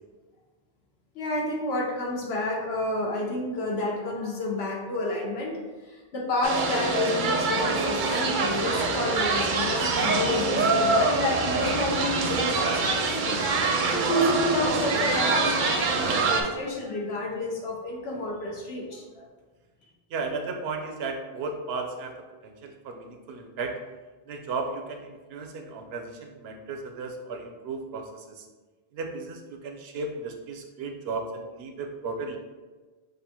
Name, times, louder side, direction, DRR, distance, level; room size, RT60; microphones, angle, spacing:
voice 1, 1.1-13.4 13.9-19.2, left 1 dB, 90° left, -1 dB, 1.1 m, -30 dB
sound 1, 6.4-16.4, right 3 dB, 60° right, 0.6 m, -25 dB
voice 2, 20.1-23.8 24.3-28.5 28.9-32.4, right 3 dB, 90° right, 4 dB, 0.8 m, -35 dB
6.4 x 2.3 x 2.8 m, 1.3 s
omnidirectional pair, 1.0 m